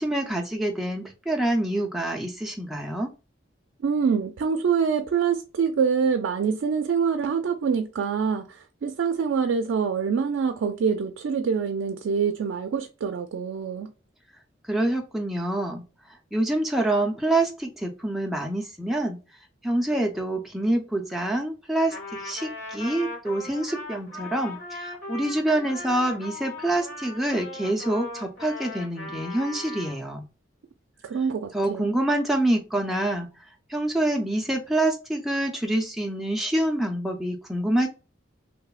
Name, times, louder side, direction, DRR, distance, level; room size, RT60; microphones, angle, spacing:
voice 1, 0.0-3.1 14.7-15.8 16.3-19.2 19.6-30.2 31.5-33.3 33.7-37.9, right 1 dB, ahead, 0.3 m, -26 dB
voice 2, 3.8-13.9 31.0-31.9, right 6 dB, 80° right, 0.3 m, -25 dB
Trumpet, 21.9-30.0, left 2 dB, 65° left, 1.2 m, -38 dB
3.0 x 2.1 x 2.2 m
head